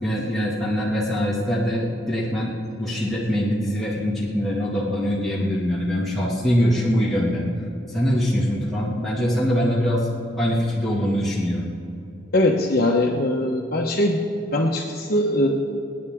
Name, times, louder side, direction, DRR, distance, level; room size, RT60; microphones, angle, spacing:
voice 1, 0.0-7.5 7.9-10.1 10.4-11.7, equal, ahead, -8 dB, 2.1 m, -23 dB
voice 2, 12.3-14.2 14.5-15.5, left 1 dB, 55° left, 0 dB, 1.1 m, -21 dB
26.5 x 9.7 x 3.7 m, 2.7 s
head